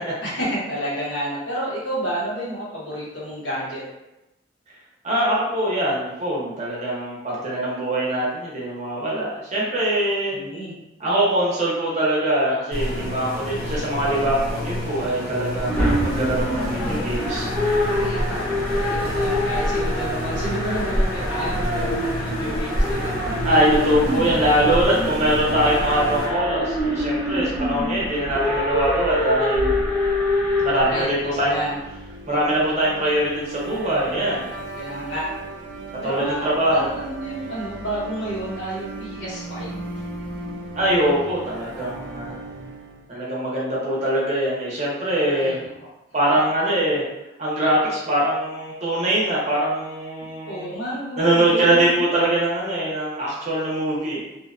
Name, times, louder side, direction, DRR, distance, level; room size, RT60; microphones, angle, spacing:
voice 1, 0.2-3.8 10.3-10.7 17.8-23.5 30.9-31.8 34.7-35.3 36.0-39.8 45.3-45.9 50.2-52.0, equal, 80° left, -7 dB, 1.0 m, -30 dB
voice 2, 5.0-10.4 11.0-17.5 23.4-29.7 30.6-31.5 32.3-34.4 36.0-36.9 40.8-42.3 43.1-45.6 46.1-47.0 47.4-50.7 51.2-54.2, right 1 dB, 40° right, -5 dB, 0.7 m, -22 dB
sound 1, 12.7-26.3, left 1 dB, 55° left, 0.8 m, -29 dB
sound 2, 15.6-31.0, left 1 dB, 5° left, 0.7 m, -25 dB
sound 3, 30.1-43.1, right 2 dB, 75° right, 0.4 m, -37 dB
2.7 x 2.1 x 2.4 m, 0.94 s
head